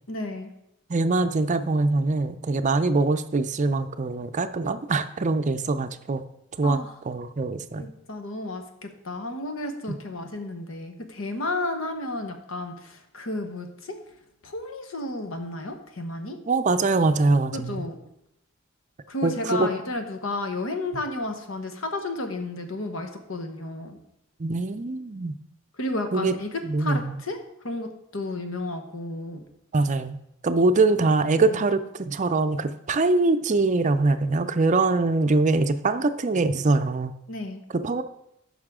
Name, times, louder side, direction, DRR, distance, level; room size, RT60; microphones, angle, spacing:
voice 1, 0.1-0.5 6.6-6.9 7.8-14.0 14.4-16.4 17.5-18.0 19.1-24.0 25.8-26.5 26.8-27.4 27.6-29.4 31.5-31.6 37.3-37.6, left 2 dB, 85° left, 6 dB, 1.2 m, -32 dB
voice 2, 0.9-6.2 6.6-7.9 9.9-10.0 16.5-17.8 19.2-19.7 24.4-25.4 26.1-26.4 26.6-27.2 29.7-30.2 30.4-37.1 37.7-38.0, right 3 dB, 35° right, 10 dB, 0.5 m, -23 dB
14.0 x 5.6 x 3.7 m, 0.81 s
head